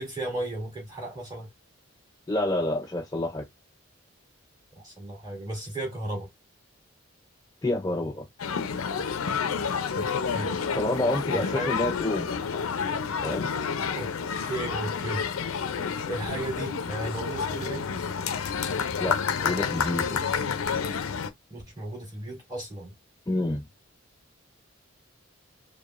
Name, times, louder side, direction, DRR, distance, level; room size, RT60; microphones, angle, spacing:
voice 1, 0.0-1.5 4.8-6.3 9.9-10.6 11.3-11.7 13.9-14.1 14.4-15.2 16.1-18.0 21.5-22.9, right 1 dB, 20° right, 2.5 m, -35 dB
voice 2, 2.3-3.4 7.6-8.3 10.7-12.3 13.2-13.5 19.0-19.2 19.4-20.3 23.3-23.6, left 1 dB, 15° left, 0.4 m, -28 dB
sound 1, 8.4-21.3, left 6 dB, 85° left, 0.5 m, -29 dB
4.8 x 2.3 x 2.4 m
head